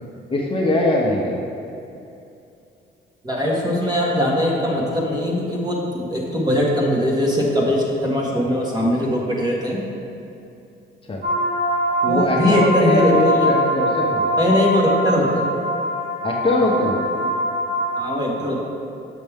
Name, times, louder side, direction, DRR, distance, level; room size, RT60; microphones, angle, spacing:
voice 1, 0.3-1.4 11.1-11.2 12.0-14.4 16.2-17.1, left 1 dB, 25° left, -3 dB, 1.0 m, -21 dB
voice 2, 3.2-9.8 12.1-13.5 14.4-15.5 18.0-18.6, left 1 dB, 20° right, -4 dB, 1.5 m, -21 dB
sound 1, 11.2-18.0, equal, 55° right, 1.4 m, -23 dB
6.8 x 6.5 x 3.6 m, 2.7 s
cardioid pair, 90°, 20 cm